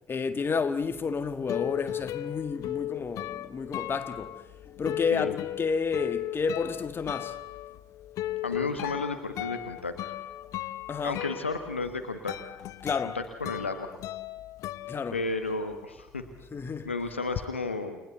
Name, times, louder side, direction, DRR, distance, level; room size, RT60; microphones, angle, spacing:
voice 1, 0.1-4.3 4.8-7.4 10.9-11.2 12.8-13.2 14.9-15.2 16.5-16.9, left 5 dB, 35° left, 1.8 m, -30 dB
sound 1, 1.0-15.7 16.0-17.5, left 14 dB, 60° left, 0.8 m, -37 dB
voice 2, 8.4-9.9 11.0-12.3 13.1-13.9 15.1-16.2 16.8-18.0, left 3 dB, 85° left, 1.4 m, -32 dB
29.0 x 19.5 x 8.2 m
figure-of-eight pair, 45°, 6 cm